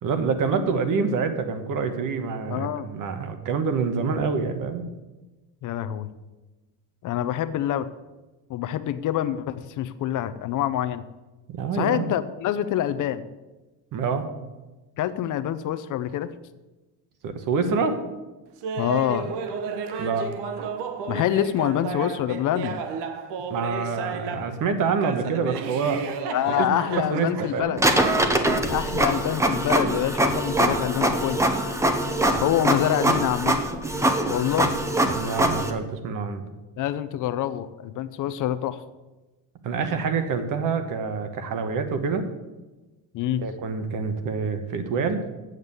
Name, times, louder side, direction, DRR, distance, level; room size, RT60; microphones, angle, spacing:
voice 1, 0.0-4.9 11.5-12.1 13.9-14.3 17.2-18.0 20.0-20.3 23.5-26.0 26.6-26.7 27.1-27.7 35.1-36.4 39.6-42.3 43.4-45.2, right 5 dB, 50° right, 8 dB, 1.2 m, -26 dB
voice 2, 2.5-2.9 5.6-6.1 7.0-7.9 8.5-11.0 11.7-13.3 15.0-16.3 18.8-19.3 21.1-22.8 26.3-27.8 28.7-31.4 32.4-33.5 34.3-34.7 36.8-38.8 43.1-43.4, left 11 dB, 50° left, 13 dB, 0.6 m, -26 dB
Laughter, 18.6-24.6 25.0-27.6, right 5 dB, 90° right, 1.2 m, -33 dB
Printer, 27.8-35.7, right 1 dB, 5° right, 0.7 m, -23 dB
8.0 x 7.3 x 8.0 m, 1.1 s
cardioid pair, 170°, 40 cm